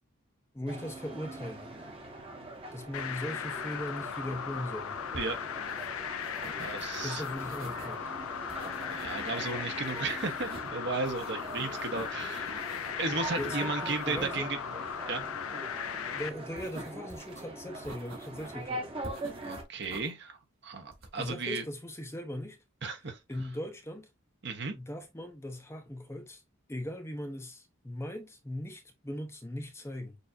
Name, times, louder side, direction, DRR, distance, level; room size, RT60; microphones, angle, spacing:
voice 1, 0.5-1.7 2.7-5.0 7.0-8.0 13.4-14.5 16.1-18.9 21.2-22.6 23.3-24.1 24.7-26.4 26.7-30.2, left 1 dB, 10° left, 0.5 m, -39 dB
sound 1, 0.7-19.6, right 2 dB, 25° right, 0.9 m, -43 dB
sound 2, 2.9-16.3, left 8 dB, 85° left, 0.5 m, -37 dB
voice 2, 5.1-5.4 6.6-7.2 8.9-12.6 13.0-14.6 15.1-15.3 19.4-21.6 22.8-23.2 24.4-24.8, right 3 dB, 55° right, 0.9 m, -35 dB
sound 3, 5.7-5.9 6.1-7.9 8.5-9.5 9.8-10.7 11.0-12.9 13.2-14.3 16.6-17.4 17.8-18.6 19.0-20.1 20.9-21.3, right 2 dB, 70° right, 1.9 m, -48 dB
6.6 x 2.5 x 2.6 m
head